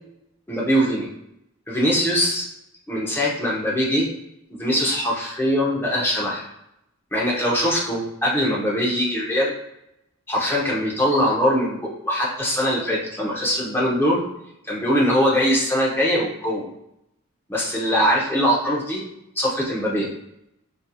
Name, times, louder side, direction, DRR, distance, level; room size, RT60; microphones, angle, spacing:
voice 1, 0.5-1.1 1.7-2.5 2.9-4.1 4.5-6.4 7.1-9.5 10.3-14.2 14.7-16.7 17.5-19.0 19.4-20.1, equal, 10° left, -4 dB, 0.7 m, -22 dB
4.1 x 2.7 x 2.3 m, 0.82 s
head